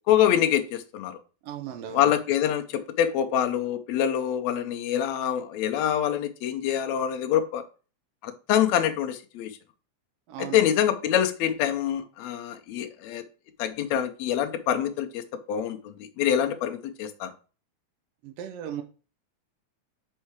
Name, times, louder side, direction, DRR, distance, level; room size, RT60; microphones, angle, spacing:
voice 1, 0.1-1.2 1.9-7.6 8.2-9.5 10.4-13.2 13.6-15.2 15.5-17.3, left 10 dB, 75° left, 1.9 m, -25 dB
voice 2, 1.4-2.1 10.3-10.8 18.2-18.8, right 10 dB, 70° right, 1.6 m, -37 dB
5.6 x 4.4 x 4.6 m
omnidirectional pair, 3.4 m